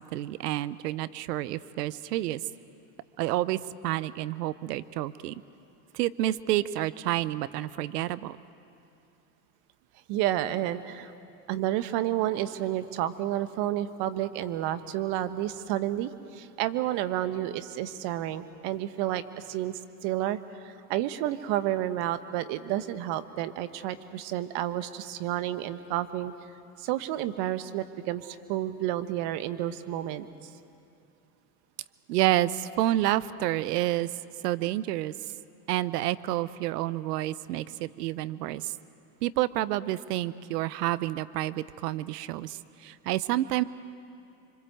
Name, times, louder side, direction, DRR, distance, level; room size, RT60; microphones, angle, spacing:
voice 1, 0.0-2.4 3.2-3.6 3.8-5.3 5.9-8.4 32.1-34.1 34.4-35.1 35.7-38.7 39.2-43.6, right 15 dB, 75° right, 17 dB, 0.9 m, -29 dB
voice 2, 10.1-11.1 11.5-26.3 26.8-30.5, right 13 dB, 55° right, 11 dB, 1.4 m, -30 dB
27.0 x 25.0 x 7.9 m, 2.6 s
hypercardioid pair, 95°, 47 cm